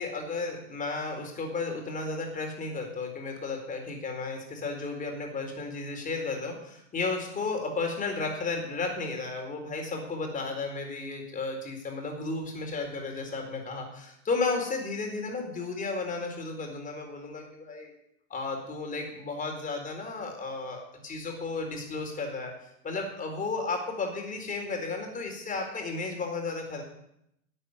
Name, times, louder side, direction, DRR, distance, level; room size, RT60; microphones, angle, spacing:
voice 1, 0.0-17.9 18.3-22.5 22.8-26.8, left 3 dB, 20° left, 3 dB, 4.3 m, -33 dB
12.5 x 8.4 x 9.7 m, 0.79 s
hypercardioid pair, 120°, 37 cm